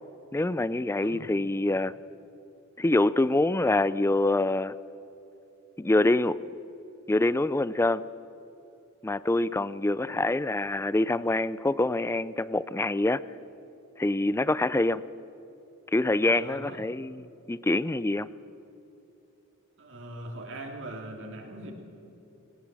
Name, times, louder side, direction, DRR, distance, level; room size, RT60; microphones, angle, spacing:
voice 1, 0.3-1.9 2.8-4.7 5.8-6.4 7.1-8.0 9.0-13.2 14.0-15.0 15.9-18.3, left 2 dB, 10° left, 0.4 m, -25 dB
voice 2, 16.3-16.8 19.8-21.7, right 1 dB, 60° right, 3.0 m, -41 dB
19.5 x 17.5 x 7.5 m
head